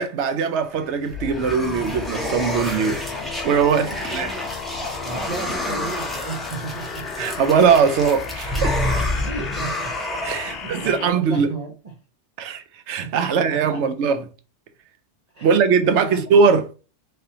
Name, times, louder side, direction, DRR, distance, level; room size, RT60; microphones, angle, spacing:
voice 1, 0.0-3.0 3.4-4.3 7.2-9.0 10.2-11.5 12.4-14.2 15.4-16.7, right 6 dB, 80° right, 0.9 m, -20 dB
sound 1, 0.8-10.8, left 1 dB, ahead, 0.6 m, -29 dB
sound 2, 1.1-11.1, left 7 dB, 65° left, 0.7 m, -36 dB
voice 2, 3.8-7.3 9.2-10.0 10.4-12.0 13.0-13.8 15.3-16.4, right 3 dB, 40° right, 0.7 m, -34 dB
3.8 x 3.4 x 2.7 m
omnidirectional pair, 1.2 m